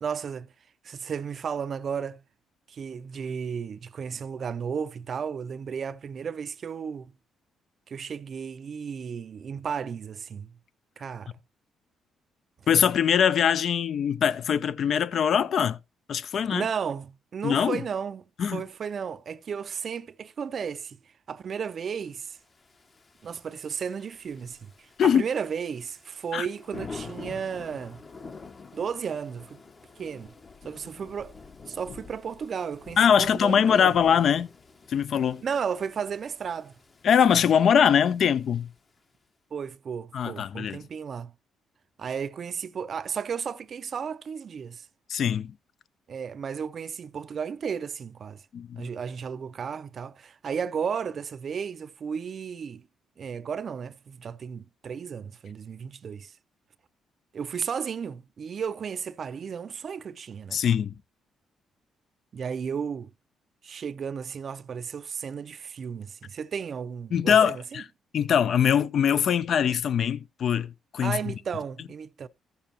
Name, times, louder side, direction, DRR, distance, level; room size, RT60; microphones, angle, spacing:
voice 1, 0.0-0.5 0.8-2.2 2.7-7.1 7.9-10.5 11.0-11.3 16.5-18.2 18.5-21.0 21.3-22.4 23.2-28.0 28.7-29.6 30.0-30.3 30.6-31.4 31.7-34.0 35.4-36.7 39.5-41.3 42.0-44.9 46.1-48.4 48.8-52.9 53.2-56.3 57.3-60.6 62.3-63.1 63.6-67.8 71.0-72.3, right 6 dB, 50° right, 0.5 m, -34 dB
voice 2, 12.7-15.8 16.1-16.7 17.4-17.8 18.4-18.6 25.0-25.2 26.3-26.5 33.0-34.5 34.9-35.4 37.0-38.7 40.1-40.8 45.1-45.5 48.5-48.9 60.5-61.0 67.1-67.8 68.1-71.2, left 8 dB, 60° left, 0.5 m, -22 dB
Thunder / Rain, 22.4-39.0, left 4 dB, 35° left, 0.9 m, -47 dB
14.5 x 6.9 x 2.8 m
cardioid pair, 90°, 0 cm